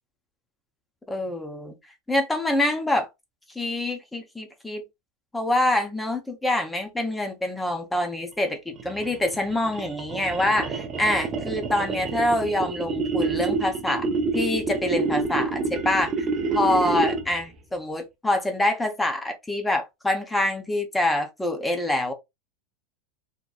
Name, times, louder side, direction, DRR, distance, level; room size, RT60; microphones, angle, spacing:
voice 1, 1.1-1.7 2.1-3.1 3.6-4.8 5.3-14.1 14.3-16.1 16.5-22.1, left 1 dB, 10° left, 0.7 m, -25 dB
sound 1, 8.7-17.4, right 3 dB, 35° right, 0.5 m, -28 dB
2.8 x 2.0 x 2.3 m
hypercardioid pair, 95°, 0 cm